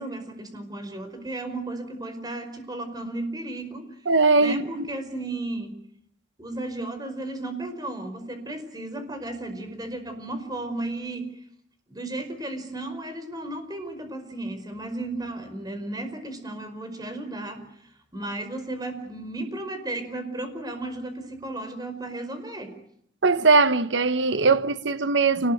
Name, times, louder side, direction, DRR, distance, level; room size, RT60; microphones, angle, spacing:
voice 1, 0.0-3.8 4.4-5.7 6.4-11.3 11.9-22.7, right 2 dB, 20° right, 5.0 m, -34 dB
voice 2, 4.1-4.9 23.2-25.5, right 3 dB, 80° right, 1.1 m, -20 dB
29.0 x 20.0 x 9.5 m
head